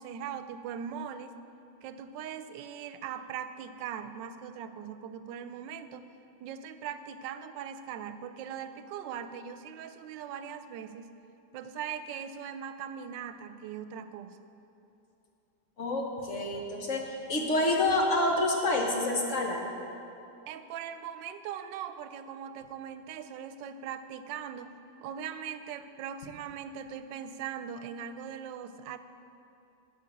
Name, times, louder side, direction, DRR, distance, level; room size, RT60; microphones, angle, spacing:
voice 1, 0.0-1.3 1.8-6.1 6.4-11.1 11.5-14.4 20.5-29.0, right 8 dB, 90° right, 11 dB, 1.3 m, -40 dB
voice 2, 15.8-19.7, left 2 dB, 50° left, 0 dB, 1.3 m, -28 dB
12.0 x 5.2 x 8.5 m, 2.8 s
omnidirectional pair, 1.9 m